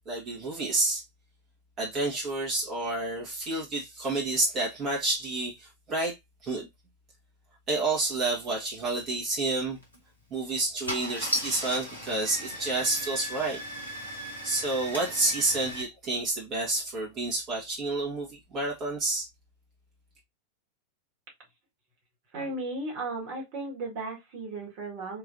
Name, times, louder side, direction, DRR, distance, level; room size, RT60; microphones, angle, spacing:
voice 1, 0.1-1.0 1.8-6.2 6.4-6.7 7.7-9.8 10.3-13.6 14.4-19.3, right 2 dB, 30° right, 1.8 m, -29 dB
Car / Engine starting, 9.8-10.0 10.6-10.7 10.9-15.8, equal, 85° left, 1.8 m, -36 dB
voice 2, 22.3-25.2, right 2 dB, 45° right, 2.0 m, -35 dB
4.7 x 3.3 x 2.7 m
figure-of-eight pair, 90°, 0 cm